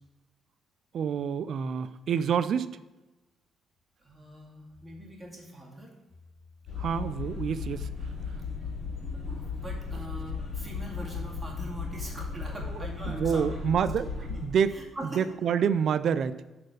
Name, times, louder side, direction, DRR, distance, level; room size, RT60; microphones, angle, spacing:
voice 1, 0.9-2.8 6.8-7.9 13.1-14.8 15.2-16.4, right 7 dB, 65° right, 14 dB, 0.4 m, -27 dB
voice 2, 4.0-5.9 9.0-13.7 14.3-14.4 14.7-15.2 15.5-15.6, right 1 dB, 15° right, -2 dB, 2.1 m, -42 dB
sound 1, 6.7-14.5, left 5 dB, 55° left, 2.6 m, -36 dB
6.4 x 4.3 x 6.5 m, 1.1 s
cardioid pair, 90°, 0 cm